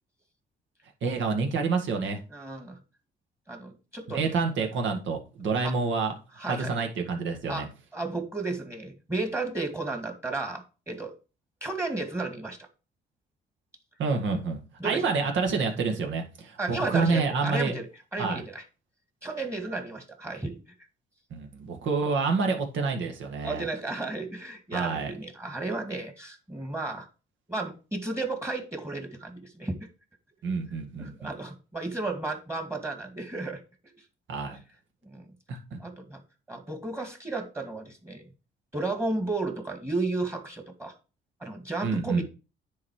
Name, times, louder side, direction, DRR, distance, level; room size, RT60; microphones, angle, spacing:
voice 1, 1.0-2.2 4.1-7.7 14.0-14.6 14.8-17.7 18.2-18.4 21.3-23.7 24.7-25.1 30.4-31.3 34.3-34.6 35.5-35.8 41.8-42.2, right 4 dB, 70° right, 3 dB, 1.9 m, -28 dB
voice 2, 2.3-2.8 3.5-4.7 5.6-5.7 6.4-6.8 7.5-7.7 7.9-11.1 11.6-12.6 14.8-15.1 16.6-18.6 19.2-20.6 23.4-27.1 27.5-29.8 31.0-33.6 35.0-35.3 35.8-36.2 36.5-38.2 38.7-40.9 41.4-42.2, right 2 dB, 15° right, 4 dB, 1.9 m, -33 dB
9.6 x 4.1 x 4.8 m, 0.33 s
cardioid pair, 90°, 20 cm